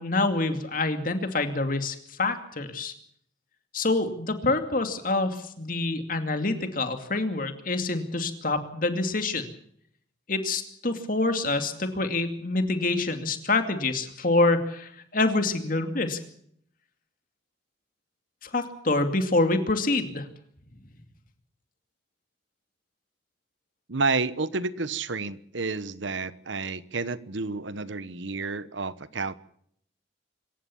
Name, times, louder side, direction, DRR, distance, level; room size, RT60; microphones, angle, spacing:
voice 1, 0.0-2.9 3.7-9.5 10.3-16.2 18.4-20.3, left 2 dB, 45° left, 7 dB, 2.5 m, -26 dB
voice 2, 23.9-29.3, right 3 dB, 75° right, 16 dB, 1.1 m, -30 dB
26.0 x 15.0 x 7.2 m, 0.66 s
head